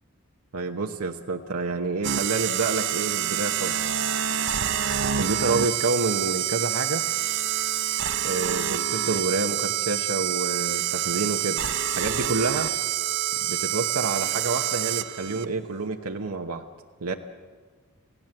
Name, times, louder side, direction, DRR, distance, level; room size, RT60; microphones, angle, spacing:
voice 1, 0.5-3.8 5.1-7.1 8.2-11.6 11.9-12.7 13.5-16.6 17.0-17.1, right 3 dB, 80° right, 3 dB, 1.0 m, -28 dB
sound 1, 2.0-15.4, right 10 dB, 55° right, 0.7 m, -27 dB
27.5 x 16.5 x 7.8 m, 1.5 s
head